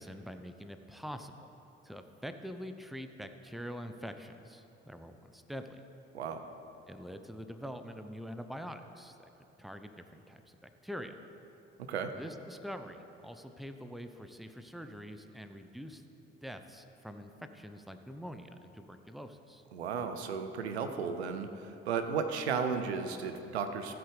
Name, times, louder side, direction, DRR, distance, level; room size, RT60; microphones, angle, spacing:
voice 1, 0.0-1.5 1.8-5.8 6.9-9.2 9.6-11.1 12.1-16.0 16.4-19.6, equal, ahead, 7 dB, 0.8 m, -45 dB
voice 2, 11.8-12.1 19.7-23.9, right 6 dB, 90° right, 8 dB, 0.6 m, -34 dB
15.5 x 7.9 x 3.4 m, 2.9 s
hypercardioid pair, 45°, 31 cm